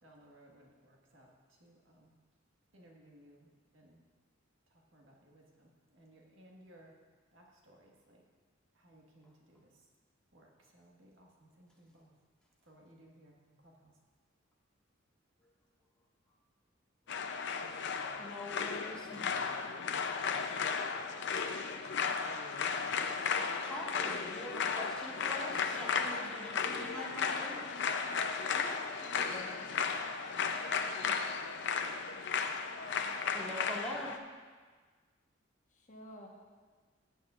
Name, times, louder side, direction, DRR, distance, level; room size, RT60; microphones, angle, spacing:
voice 1, 0.0-2.1 2.7-4.0 4.7-6.9 7.3-8.2 8.7-9.8 10.3-12.1 12.6-13.9, right 1 dB, 70° right, -1 dB, 1.7 m, -61 dB
sound 1, 17.1-34.2, left 5 dB, 65° left, 0.6 m, -35 dB
voice 2, 18.2-19.4 20.5-20.6 23.3-27.6 33.3-34.1, left 1 dB, 5° left, -5 dB, 1.7 m, -44 dB
voice 3, 28.5-30.0 30.8-31.2 35.7-36.3, left 1 dB, 40° left, -1 dB, 1.2 m, -50 dB
15.5 x 8.8 x 2.5 m, 1.4 s
head